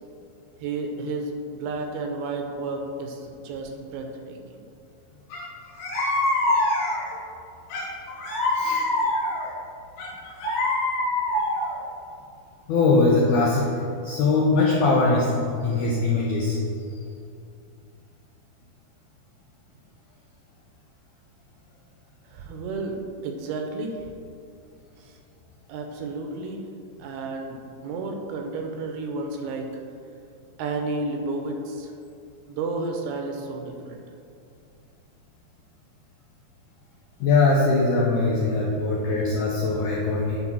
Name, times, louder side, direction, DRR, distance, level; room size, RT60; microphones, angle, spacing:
voice 1, 0.6-4.6 22.3-24.1 25.1-25.2 25.7-26.7 27.0-29.8 30.6-31.9 32.5-34.0, right 3 dB, 80° right, 3 dB, 2.7 m, -32 dB
sound 1, 5.3-5.4 5.8-7.2 7.7-9.5 10.0-11.8, left 1 dB, 65° left, 3.4 m, -24 dB
voice 2, 8.5-8.9 12.7-13.7 14.0-16.6 37.2-40.4, left 3 dB, 85° left, -4 dB, 1.8 m, -21 dB
9.9 x 3.8 x 6.0 m, 2.5 s
omnidirectional pair, 4.7 m